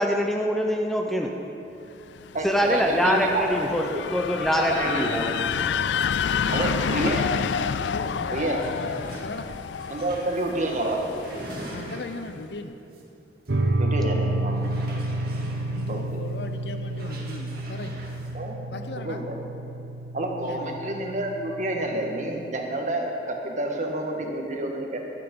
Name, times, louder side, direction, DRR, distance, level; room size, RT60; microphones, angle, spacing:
voice 1, 0.0-1.3 2.4-5.6, equal, ahead, 1 dB, 0.7 m, -24 dB
sound 1, 2.2-12.0, left 7 dB, 90° left, 0.4 m, -29 dB
voice 2, 2.3-4.0 4.6-5.4 6.5-7.3 8.3-8.6 9.9-11.1 13.8-14.7 15.9-16.2 18.3-19.4 20.1-25.0, right 1 dB, 45° right, 1 dB, 1.7 m, -29 dB
sound 2, 6.3-6.4 6.7-12.4 12.9-13.0 13.4-13.5 14.5-18.3, right 1 dB, 60° right, 2.2 m, -42 dB
voice 3, 7.9-8.4 9.2-9.5 11.7-12.7 15.3-18.0 18.7-19.2 20.4-20.7, left 2 dB, 70° left, 8 dB, 0.8 m, -37 dB
sound 3, 13.5-22.5, right 2 dB, 85° right, 1.0 m, -30 dB
15.0 x 11.5 x 5.4 m, 2.8 s
head